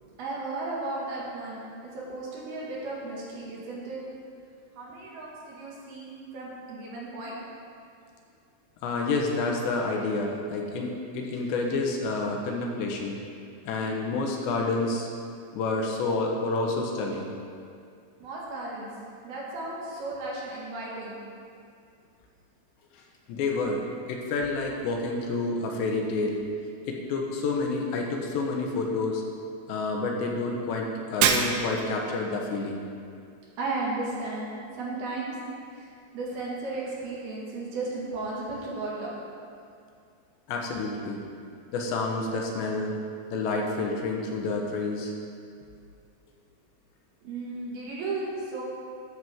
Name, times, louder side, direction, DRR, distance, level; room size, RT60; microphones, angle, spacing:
voice 1, 0.1-1.6 1.9-4.0 4.8-7.4 18.2-18.9 19.2-21.2 33.6-34.5 34.7-35.3 35.7-35.9 36.1-39.1 47.2-48.6, right 2 dB, 60° right, -5 dB, 3.6 m, -34 dB
voice 2, 8.8-13.2 13.6-15.1 15.5-17.3 23.3-23.8 24.1-26.4 26.8-29.2 29.7-32.8 40.5-41.2 41.7-43.0 43.3-45.1, left 3 dB, 80° left, 0 dB, 3.3 m, -29 dB
Shatter, 31.2-32.0, right 6 dB, 85° right, 3.1 m, -24 dB
13.5 x 11.0 x 3.6 m, 2.4 s
omnidirectional pair, 5.2 m